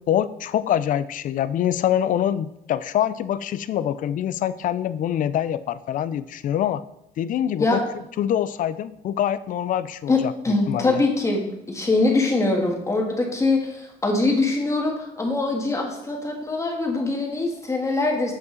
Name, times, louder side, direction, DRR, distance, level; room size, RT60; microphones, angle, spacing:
voice 1, 0.1-6.8 7.2-11.0, left 10 dB, 50° left, 16 dB, 0.4 m, -25 dB
voice 2, 10.1-18.3, left 2 dB, 15° left, 0 dB, 1.6 m, -23 dB
8.3 x 5.4 x 3.9 m, 0.83 s
cardioid pair, 110°, 17 cm